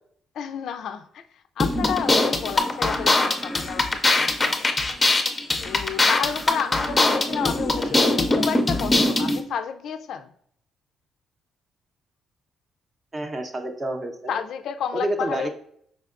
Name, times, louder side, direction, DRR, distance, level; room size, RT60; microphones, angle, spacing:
voice 1, 0.3-4.7 5.6-10.3 14.3-15.5, left 7 dB, 70° left, 0.3 m, -31 dB
sound 1, 1.6-9.4, left 2 dB, 20° left, 0.5 m, -22 dB
voice 2, 7.8-8.2 13.1-14.3 14.9-15.5, right 1 dB, 30° right, 0.6 m, -29 dB
5.2 x 3.4 x 2.4 m
cardioid pair, 110°, 0 cm